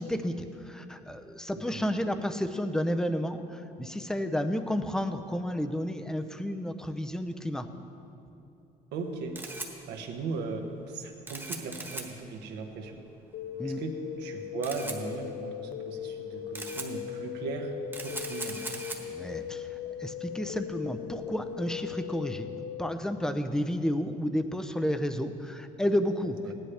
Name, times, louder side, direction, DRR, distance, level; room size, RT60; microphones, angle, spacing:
voice 1, 0.0-7.7 13.6-13.8 19.0-19.7 20.0-22.5 22.8-26.4, equal, 5° left, 8 dB, 0.6 m, -31 dB
voice 2, 8.9-9.4 9.9-13.0 13.6-17.7 18.0-18.6 26.4-26.5, right 4 dB, 80° right, 3 dB, 1.3 m, -37 dB
Camera, 9.0-22.3, right 2 dB, 10° right, 1.4 m, -43 dB
sound 1, 13.3-22.9, left 9 dB, 85° left, 0.5 m, -39 dB
16.0 x 10.5 x 3.4 m, 2.8 s
cardioid pair, 110°, 17 cm